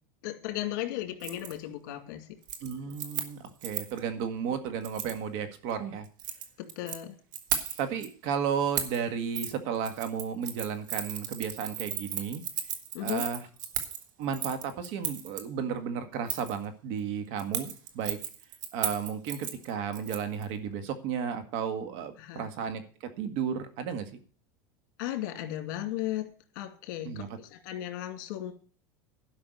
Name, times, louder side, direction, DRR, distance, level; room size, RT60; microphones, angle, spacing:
voice 1, 0.2-2.3 6.6-7.2 12.9-13.2 22.2-22.4 25.0-28.5, left 13 dB, 70° left, 6 dB, 2.4 m, -35 dB
Keys jangling, 1.2-1.5 1.9-2.1 2.4-4.0 4.8-5.2 6.0-7.0 7.3-8.1 8.7-9.0 9.3-9.5 9.8-15.4 16.3-16.6 17.4-20.4 20.7-20.8, right 10 dB, 85° right, 1.7 m, -35 dB
voice 2, 2.6-6.1 7.8-12.4 13.0-13.5 14.2-18.2 18.7-24.2 27.0-27.3, right 7 dB, 55° right, 8 dB, 1.8 m, -33 dB
11.5 x 5.8 x 8.1 m, 0.42 s
supercardioid pair, 150°, 10 cm